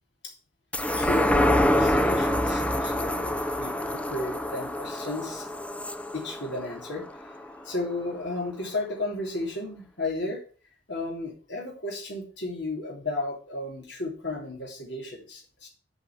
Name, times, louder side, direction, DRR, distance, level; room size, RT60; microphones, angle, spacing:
sound 1, 0.7-7.5 7.9-8.0, left 1 dB, 5° left, 0.6 m, -26 dB
voice 1, 1.0-5.5 6.1-7.3 7.6-10.4 10.9-15.7, left 2 dB, 70° left, 0 dB, 3.4 m, -34 dB
8.4 x 6.4 x 7.8 m, 0.40 s
head